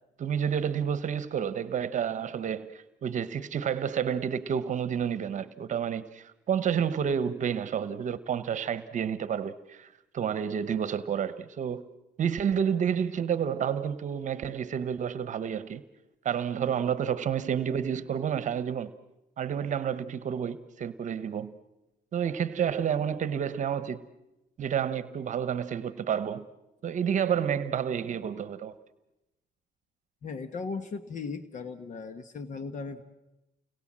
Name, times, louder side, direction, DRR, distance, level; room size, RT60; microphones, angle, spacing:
voice 1, 0.2-9.9 10.1-11.8 12.2-15.8 16.2-18.9 19.4-21.6 22.1-24.0 24.6-26.5 26.8-28.7, right 8 dB, 45° right, 1.1 m, -30 dB
voice 2, 30.2-33.0, left 4 dB, 45° left, 1.4 m, -37 dB
30.0 x 21.5 x 7.6 m
cardioid pair, 110°, 17 cm